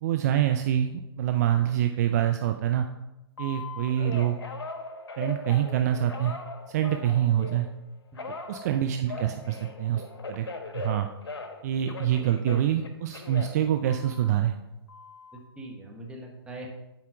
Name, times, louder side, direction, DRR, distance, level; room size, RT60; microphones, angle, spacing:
voice 1, 0.0-2.9 3.4-4.4 5.2-6.3 6.7-7.7 8.5-10.5 10.7-11.1 11.6-14.5, right 11 dB, 40° right, 7 dB, 0.5 m, -26 dB
Telephone, 3.4-7.7 8.2-11.6 11.9-14.4 14.9-15.4, left 3 dB, 80° left, 1.2 m, -39 dB
voice 2, 15.3-16.7, right 1 dB, 5° right, 0 dB, 1.3 m, -42 dB
7.8 x 4.3 x 5.8 m, 0.99 s
hypercardioid pair, 135°, 14 cm